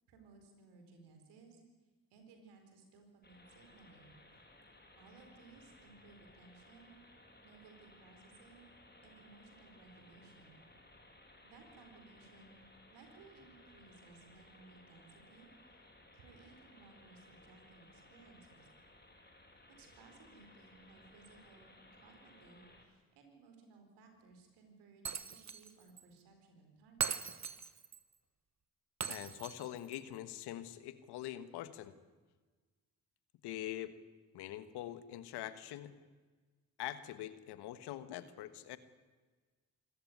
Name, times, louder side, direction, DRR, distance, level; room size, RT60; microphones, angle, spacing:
voice 1, 0.1-1.6 2.1-4.2 5.0-7.0 7.4-8.7 9.0-10.6 11.4-12.6 12.9-15.8 16.1-18.7 19.8-27.2, right 4 dB, 85° right, 5 dB, 4.5 m, -60 dB
sound 1, 3.2-22.8, left 1 dB, 25° left, 7.6 m, -61 dB
Shatter, 25.1-25.7 26.0-26.1 27.0-28.0 29.0-30.0, right 6 dB, 45° right, 1.5 m, -40 dB
voice 2, 29.1-31.9 33.4-34.0 34.3-35.9 36.8-38.8, left 13 dB, 85° left, 13 dB, 1.4 m, -44 dB
26.0 x 14.5 x 9.5 m, 1.3 s
supercardioid pair, 45°, 39 cm